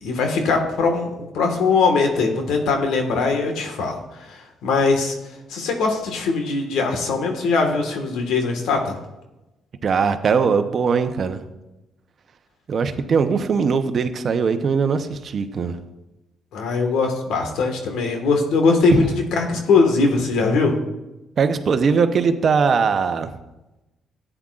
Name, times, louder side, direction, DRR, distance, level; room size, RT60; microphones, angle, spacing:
voice 1, 0.0-4.0 4.3-5.2 5.5-8.9 16.5-19.0 19.3-20.8, left 4 dB, 85° left, 4 dB, 1.6 m, -21 dB
voice 2, 9.8-11.4 12.7-15.8 18.9-19.1 21.4-23.4, right 5 dB, 50° right, 9 dB, 0.8 m, -20 dB
13.0 x 8.9 x 2.5 m, 0.98 s
cardioid pair, 90°, 0 cm